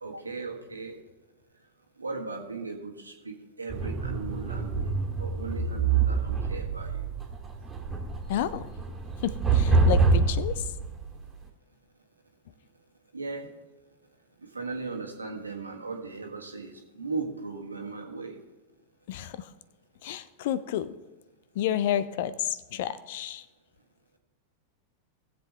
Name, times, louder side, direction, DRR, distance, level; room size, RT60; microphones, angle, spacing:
voice 1, 0.0-1.0 2.0-4.9 5.2-7.0 13.1-13.5 14.5-18.4, right 4 dB, 80° right, 2 dB, 1.6 m, -37 dB
sound 1, 3.7-11.3, right 4 dB, 20° right, 1.9 m, -26 dB
voice 2, 8.3-8.7 9.2-10.6 19.1-19.5 20.0-20.9 21.6-23.4, left 11 dB, 55° left, 17 dB, 0.5 m, -30 dB
18.5 x 7.7 x 3.4 m, 1.1 s
figure-of-eight pair, 90°, 0 cm